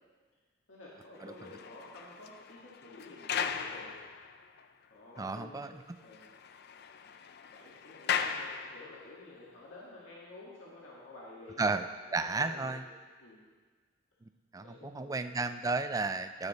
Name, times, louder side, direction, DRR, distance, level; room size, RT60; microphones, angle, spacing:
voice 1, 0.7-4.0 4.9-6.3 7.5-11.8 12.1-12.8 13.2-13.4 14.6-15.3, left 2 dB, 80° left, -5 dB, 1.7 m, -51 dB
sound 1, 1.2-4.6 5.2-5.3 5.6-5.7 6.0-9.2, left 7 dB, 55° left, 0.4 m, -38 dB
voice 2, 5.2-5.7 11.6-11.8 12.1-12.8 14.2-16.5, right 3 dB, 20° right, 9 dB, 0.3 m, -33 dB
9.7 x 8.3 x 4.0 m, 1.4 s
head